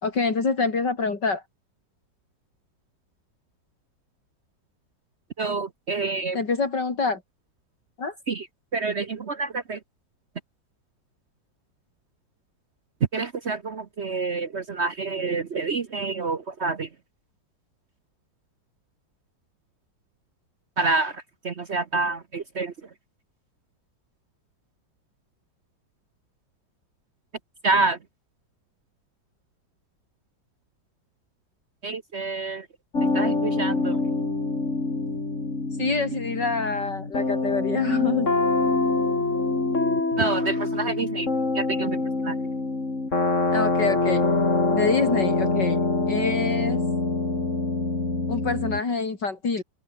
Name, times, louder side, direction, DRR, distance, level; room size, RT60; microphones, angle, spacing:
voice 1, 0.0-1.4 6.3-7.2 8.0-8.1 35.8-38.3 43.5-44.3 44.7-45.8 46.1-46.8 48.3-49.6, left 4 dB, 65° left, 4.1 m, -26 dB
voice 2, 5.4-6.4 8.3-8.4 8.7-9.8 13.1-16.9 20.8-21.1 21.4-22.7 27.6-28.0 31.8-32.6 33.1-34.0 40.2-41.3 41.5-42.3, right 3 dB, 45° right, 1.0 m, -27 dB
sound 1, 32.9-48.8, left 3 dB, 40° left, 4.0 m, -25 dB
omnidirectional pair, 2.1 m